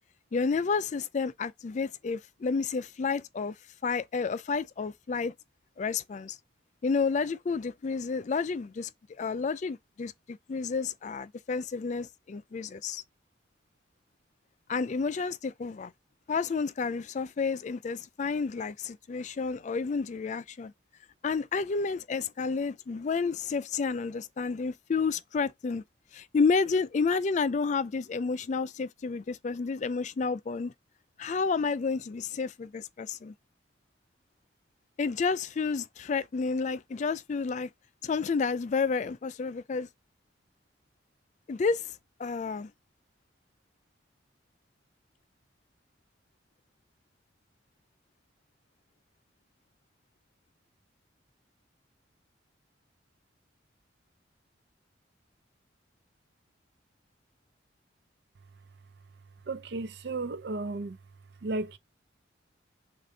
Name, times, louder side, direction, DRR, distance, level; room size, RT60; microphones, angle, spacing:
voice 1, 0.3-3.5 3.8-5.3 5.8-6.4 6.8-8.9 9.2-13.0 14.7-15.9 16.3-20.7 21.2-25.8 26.1-30.7 31.2-33.3 35.0-37.7 38.0-39.9 41.5-41.9 42.2-42.7, left 4 dB, 40° left, 0.3 m, -30 dB
voice 2, 59.5-61.0 61.4-61.8, right 3 dB, 60° right, 0.5 m, -34 dB
6.5 x 2.5 x 2.7 m
head